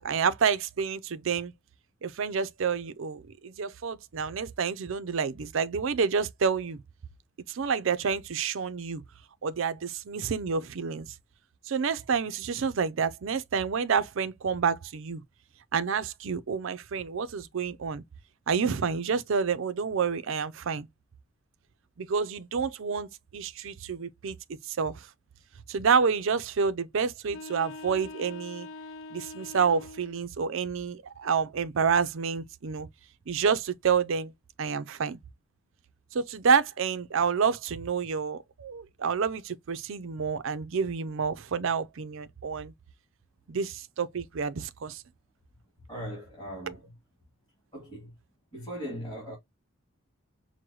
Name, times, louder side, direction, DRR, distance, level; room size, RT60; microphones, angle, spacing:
voice 1, 0.0-1.5 2.0-6.8 7.5-9.0 9.4-11.1 11.7-15.2 15.7-18.0 18.5-20.9 22.0-24.4 24.7-25.1 25.7-28.7 29.1-32.9 33.3-34.3 34.6-35.2 36.1-42.7 43.5-45.0 46.7-46.8, right 6 dB, 60° right, 0.5 m, -28 dB
sound 1, 27.2-30.2, left 3 dB, 65° left, 0.3 m, -43 dB
voice 2, 45.9-46.8 47.7-48.1 48.5-49.4, equal, 20° left, 2.4 m, -39 dB
6.1 x 2.1 x 2.9 m
head